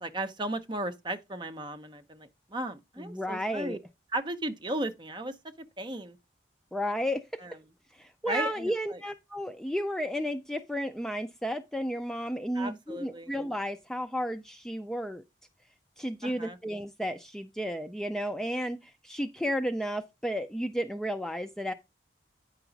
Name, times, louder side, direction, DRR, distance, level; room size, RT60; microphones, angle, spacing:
voice 1, 0.0-3.8 4.1-5.3 5.8-6.2 7.4-7.6 8.2-9.0 12.5-13.3 16.2-16.6, right 1 dB, 25° right, 0.7 m, -35 dB
voice 2, 3.0-3.8 6.7-7.2 8.0-15.2 16.0-21.7, equal, 5° left, 0.4 m, -33 dB
9.1 x 5.8 x 3.9 m
head